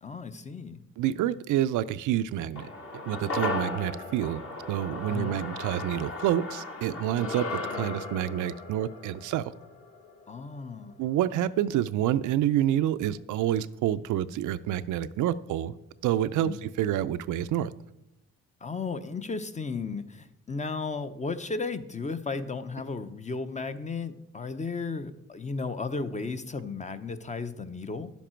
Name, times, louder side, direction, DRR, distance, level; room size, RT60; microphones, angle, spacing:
voice 1, 0.0-0.8 5.1-5.3 10.3-11.0 16.4-16.6 18.6-28.1, left 4 dB, 25° left, 11 dB, 0.7 m, -34 dB
voice 2, 1.0-2.7 3.0-4.4 4.7-9.5 11.0-15.7 16.0-17.7, right 11 dB, 80° right, 13 dB, 0.5 m, -28 dB
sound 1, 2.6-11.1 11.3-11.4, left 3 dB, 45° left, 2.0 m, -36 dB
10.5 x 7.2 x 4.4 m, 0.89 s
cardioid pair, 90°, 30 cm